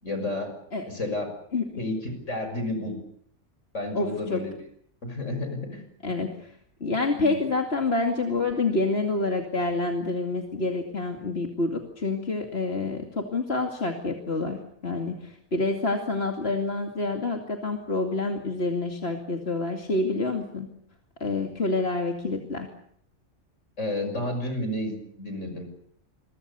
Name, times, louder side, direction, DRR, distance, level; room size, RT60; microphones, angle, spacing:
voice 1, 0.0-0.5 0.9-1.3 1.8-3.0 3.7-4.5 5.0-5.8 7.2-7.3 23.8-25.7, left 1 dB, 70° left, 6 dB, 6.7 m, -31 dB
voice 2, 3.9-4.4 6.0-6.5 6.8-20.7 21.2-22.7, left 3 dB, 50° left, 3 dB, 2.7 m, -28 dB
28.5 x 23.0 x 6.9 m, 0.66 s
omnidirectional pair, 1.3 m